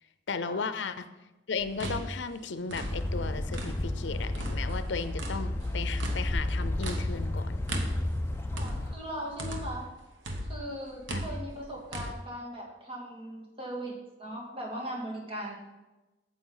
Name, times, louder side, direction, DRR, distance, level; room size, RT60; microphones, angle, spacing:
voice 1, 0.3-1.1 1.5-7.6 11.1-11.2, left 4 dB, 75° left, 12 dB, 0.6 m, -35 dB
sound 1, 1.6-4.0 4.3-9.9 10.2-12.1, right 1 dB, 85° right, 1.2 m, -38 dB
sound 2, 2.8-8.9, left 1 dB, 15° left, 0.4 m, -32 dB
voice 2, 8.5-9.8 10.5-15.6, right 1 dB, 30° right, -3 dB, 2.1 m, -39 dB
9.1 x 7.7 x 3.9 m, 1.0 s
head